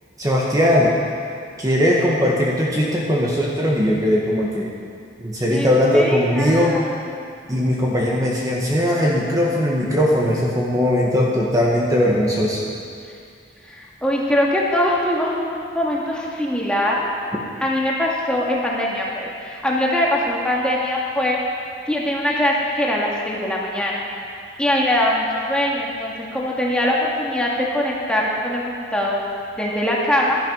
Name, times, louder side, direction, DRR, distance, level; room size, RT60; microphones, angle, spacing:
voice 1, 0.2-0.9 1.6-4.7 5.2-6.7 7.5-12.6, equal, 20° right, -4 dB, 1.6 m, -19 dB
voice 2, 5.5-7.0 13.6-17.1 17.6-21.4 21.9-24.0 24.6-29.2 29.6-30.4, left 1 dB, 5° left, -4 dB, 2.0 m, -22 dB
15.0 x 11.5 x 5.6 m, 2.3 s
head